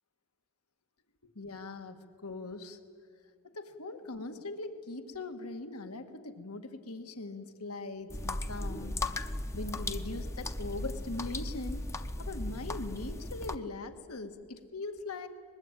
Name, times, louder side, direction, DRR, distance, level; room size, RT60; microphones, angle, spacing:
voice 1, 1.2-2.8 3.5-9.0 9.5-11.8 12.2-15.3, left 3 dB, 85° left, 7 dB, 1.8 m, -41 dB
sound 1, 8.1-13.6, left 2 dB, 10° left, 0.7 m, -37 dB
23.5 x 21.0 x 9.1 m, 2.1 s
head